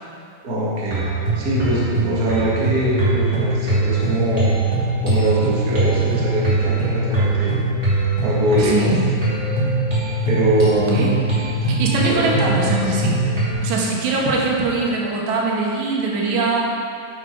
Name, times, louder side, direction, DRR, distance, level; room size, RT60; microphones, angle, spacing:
voice 1, 0.4-1.0 1.3-4.5 5.0-7.5 8.2-8.9 10.3-11.2 12.0-12.3, right 1 dB, 55° right, -6 dB, 1.0 m, -22 dB
sound 1, 0.8-13.5, right 2 dB, 25° right, 1.8 m, -21 dB
voice 2, 8.6-9.0 10.9-11.1 11.6-13.3 13.6-16.7, right 3 dB, 75° right, -2 dB, 3.4 m, -22 dB
10.0 x 7.8 x 4.7 m, 2.4 s
omnidirectional pair, 5.1 m